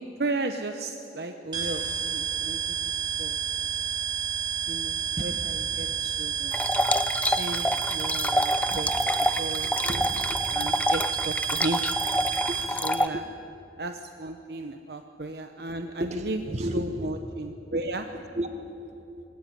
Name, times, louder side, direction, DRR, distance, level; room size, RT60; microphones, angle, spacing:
voice 1, 0.0-2.6 3.2-3.4 4.7-6.6 7.2-9.1 9.4-9.7 10.5-11.8 12.8-13.2 13.8-16.4 16.7-18.0, right 2 dB, 60° right, 7 dB, 0.9 m, -34 dB
sound 1, 1.5-12.9, right 8 dB, 25° right, 4.3 m, -30 dB
sound 2, 6.5-13.1, left 1 dB, 10° left, 0.5 m, -27 dB
voice 2, 9.6-10.4 12.4-12.6 13.1-13.2 16.0-17.1 17.7-17.8 18.1-19.2, equal, 40° right, 7 dB, 1.7 m, -34 dB
21.0 x 17.5 x 9.4 m, 2.8 s
head